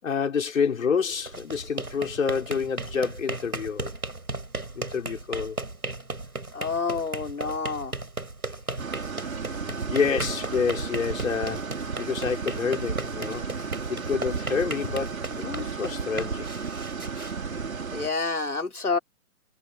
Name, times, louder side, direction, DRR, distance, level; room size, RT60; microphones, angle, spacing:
voice 1, 0.0-3.9 4.7-5.6 9.6-16.5, left 6 dB, 65° left, 5.5 m, -28 dB
sound 1, 1.1-18.1, right 2 dB, 85° right, 7.1 m, -36 dB
voice 2, 6.5-8.0 17.9-19.0, left 4 dB, 85° left, 3.9 m, -28 dB
sound 2, 8.8-18.1, right 5 dB, 70° right, 4.9 m, -34 dB
figure-of-eight pair, 130°, 43 cm